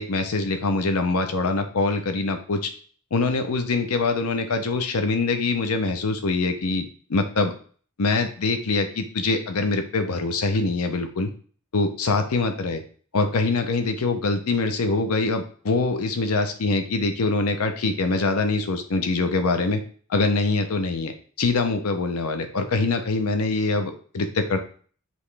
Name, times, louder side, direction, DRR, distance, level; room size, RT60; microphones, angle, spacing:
voice 1, 0.0-2.7 3.1-7.5 8.0-11.3 11.7-12.8 13.1-19.8 20.1-24.6, left 3 dB, 85° left, 7 dB, 0.7 m, -24 dB
5.3 x 3.0 x 3.3 m, 0.44 s
head